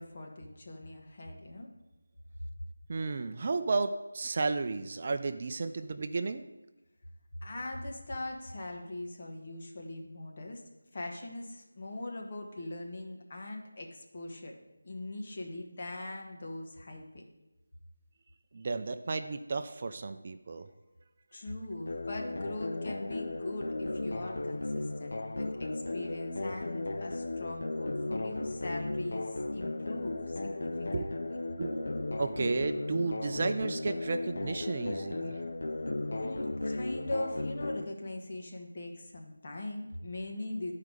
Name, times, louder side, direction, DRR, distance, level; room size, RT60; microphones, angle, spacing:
voice 1, 0.0-1.7 7.4-10.6 10.9-14.5 14.8-17.2 21.3-29.3 29.5-31.4 36.2-40.7, left 1 dB, 45° left, 1 dB, 1.3 m, -41 dB
voice 2, 2.9-6.5 18.5-20.7 30.9-31.0 31.6-35.4, right 3 dB, 40° right, 9 dB, 0.4 m, -33 dB
sound 1, 21.9-37.9, left 2 dB, 65° left, 0.5 m, -36 dB
10.5 x 4.8 x 4.9 m, 1.0 s
figure-of-eight pair, 165°, 0 cm